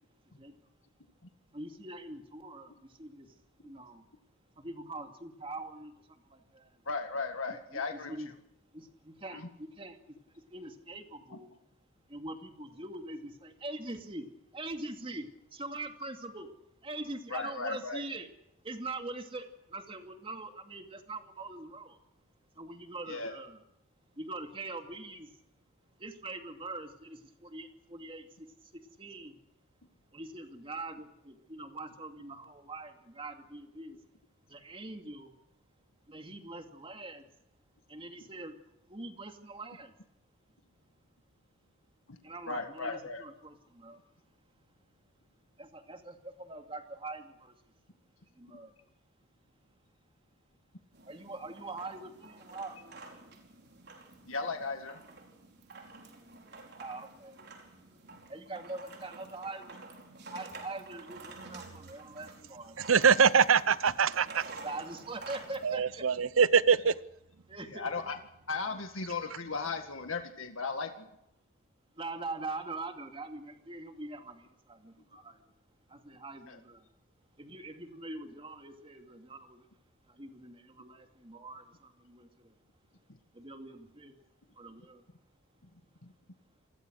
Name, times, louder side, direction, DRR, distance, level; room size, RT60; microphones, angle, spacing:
voice 1, 1.5-3.3 3.6-4.0 4.6-6.8 7.7-7.8 8.1-8.3 8.7-11.5 12.1-14.3 14.5-16.5 16.8-18.3 18.6-22.0 22.6-23.6 24.2-25.3 26.0-29.4 30.1-34.0 34.5-35.3 36.1-37.2 37.9-38.6 38.9-39.9 42.2-44.0 45.6-47.5 48.4-48.7 51.1-52.8 56.8-57.4 58.3-59.8 60.3-63.0 64.6-66.0 67.5-67.9 71.9-75.4 75.9-76.9 77.4-79.7 80.1-82.6 83.3-84.2 84.6-85.0, right 2 dB, 25° right, 2.5 m, -43 dB
voice 2, 6.9-8.2 9.3-9.5 17.3-18.0 23.1-23.3 42.1-42.2 42.5-43.2 54.3-55.0 67.7-68.2 68.5-71.1 76.5-76.6 86.0-86.1, left 4 dB, 75° left, 1.9 m, -36 dB
sound 1, 50.9-65.8, right 3 dB, 55° right, 4.9 m, -50 dB
voice 3, 62.9-64.5 65.6-67.0, right 6 dB, 80° right, 0.8 m, -23 dB
28.0 x 20.5 x 6.4 m
head